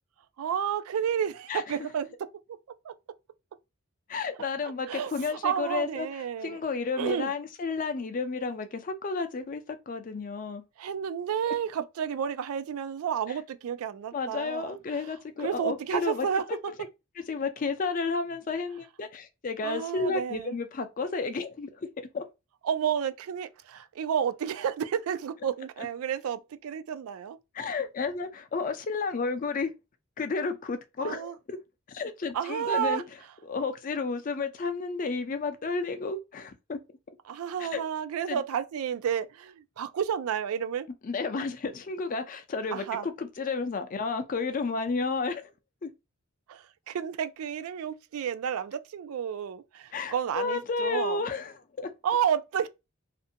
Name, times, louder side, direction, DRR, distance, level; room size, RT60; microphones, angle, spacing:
voice 1, 0.4-2.1 2.5-2.6 2.8-2.9 4.6-6.6 7.0-7.3 10.8-15.1 15.4-16.6 19.6-20.5 22.6-27.4 31.0-31.4 32.3-33.0 37.3-40.9 42.7-43.1 46.5-51.2 52.0-52.7, right 8 dB, 90° right, 0.3 m, -31 dB
voice 2, 4.1-6.1 6.4-10.6 14.1-16.3 17.3-22.3 27.5-29.7 30.2-31.6 31.9-33.0 33.4-36.8 37.6-37.8 38.3-38.4 41.0-45.5 45.8-45.9 49.9-51.9, left 4 dB, 40° left, 0.4 m, -32 dB
2.5 x 2.2 x 2.6 m
head